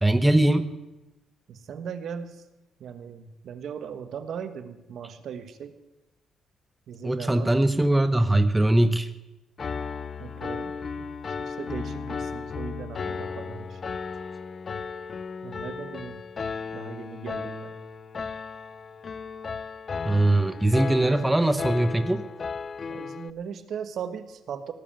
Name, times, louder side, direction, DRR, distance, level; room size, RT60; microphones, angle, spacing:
voice 1, 0.0-0.7 7.0-9.1 20.0-22.2, right 1 dB, 10° right, 10 dB, 0.9 m, -21 dB
voice 2, 1.5-2.4 2.8-5.7 6.9-7.5 10.2-10.7 11.0-11.1 11.4-13.8 15.4-16.2 16.7-17.8 22.9-24.7, right 7 dB, 65° right, 10 dB, 1.4 m, -38 dB
Piano, 9.6-23.3, left 5 dB, 40° left, 0.6 m, -35 dB
17.5 x 7.5 x 8.9 m, 1.0 s
cardioid pair, 90°, 0 cm